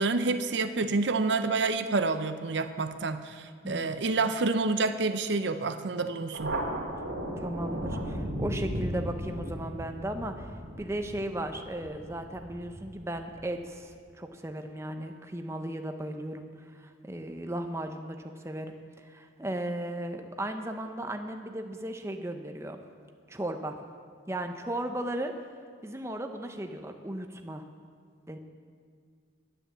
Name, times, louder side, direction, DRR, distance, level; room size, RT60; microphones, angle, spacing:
voice 1, 0.0-6.6, right 3 dB, 60° right, 10 dB, 0.6 m, -28 dB
Thunder, 6.3-13.4, right 1 dB, 85° right, 2.4 m, -36 dB
voice 2, 7.4-22.8 23.3-23.8 24.3-25.3 25.8-27.6 28.3-28.4, right 1 dB, 15° right, 5 dB, 0.7 m, -36 dB
11.0 x 10.0 x 7.3 m, 2.2 s
head